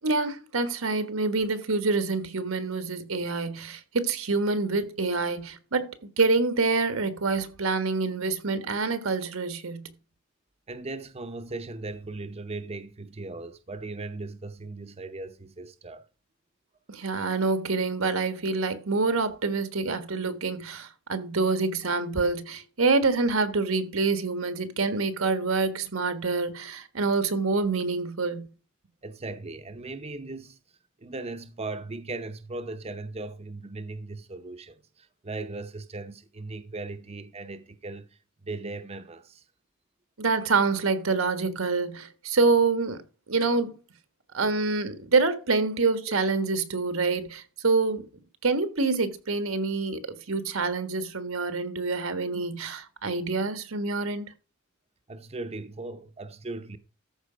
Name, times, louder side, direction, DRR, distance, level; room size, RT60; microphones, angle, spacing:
voice 1, 0.0-9.9 16.9-28.4 40.2-43.0 43.3-43.8 44.3-48.0 48.4-50.0 50.3-54.3, right 3 dB, 85° right, 1.5 m, -26 dB
voice 2, 10.7-16.1 29.0-30.6 31.0-39.4 55.1-56.8, right 2 dB, 30° right, 0.7 m, -38 dB
13.5 x 5.1 x 5.0 m
head